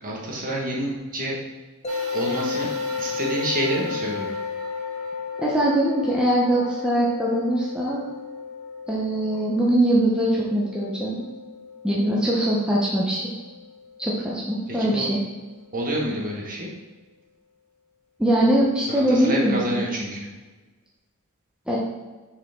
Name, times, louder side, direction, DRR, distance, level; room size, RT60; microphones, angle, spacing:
voice 1, 0.0-1.4 2.1-2.7 3.0-4.3 14.7-15.1 15.7-16.7 18.9-20.3, right 1 dB, 40° right, -3 dB, 1.6 m, -28 dB
sound 1, 1.8-14.9, left 5 dB, 30° left, 0.6 m, -34 dB
sound 2, 1.9-10.5 11.1-11.2 12.3-12.4, left 2 dB, 85° right, 1.0 m, -40 dB
voice 2, 5.4-8.0 8.9-11.2 11.8-13.3 14.0-15.2 18.2-19.8 21.7-21.8, right 1 dB, 5° right, -5 dB, 0.8 m, -22 dB
6.4 x 4.9 x 3.7 m, 1.3 s
head